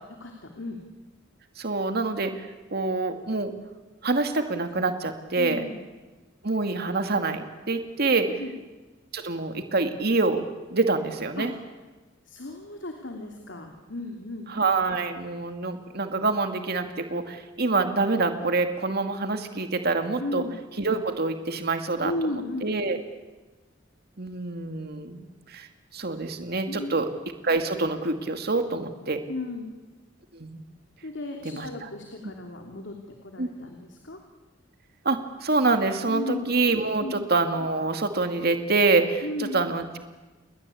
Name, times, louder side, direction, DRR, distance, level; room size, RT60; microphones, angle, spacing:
voice 1, 0.2-0.8 5.4-5.8 8.4-8.5 11.4-11.5 12.3-14.5 20.2-20.5 22.0-22.8 26.7-26.9 29.3-29.7 31.0-32.9 33.2-34.2 36.1-36.5 37.0-37.2 39.2-39.6, left 2 dB, 65° left, 3 dB, 3.1 m, -34 dB
voice 2, 1.6-3.5 4.0-5.6 6.4-8.3 9.1-10.4 10.7-11.5 14.5-20.4 20.8-22.1 22.6-23.0 24.2-25.7 25.9-27.1 27.4-29.2 30.3-30.6 31.4-31.7 33.4-33.5 35.0-40.0, right 3 dB, 55° right, 7 dB, 2.3 m, -26 dB
29.5 x 21.0 x 8.5 m, 1.2 s
head